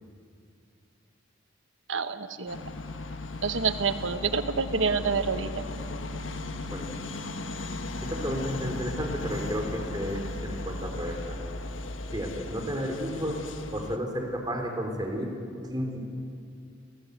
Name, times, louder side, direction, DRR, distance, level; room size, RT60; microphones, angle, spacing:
voice 1, 1.9-2.6 3.4-5.6, right 5 dB, 75° right, 10 dB, 1.3 m, -28 dB
sound 1, 2.5-14.0, left 2 dB, 75° left, 1.3 m, -36 dB
voice 2, 8.0-11.4 12.1-13.4 13.7-15.3 15.7-16.0, equal, 20° right, 2 dB, 3.7 m, -32 dB
29.5 x 17.5 x 8.2 m, 2.4 s
head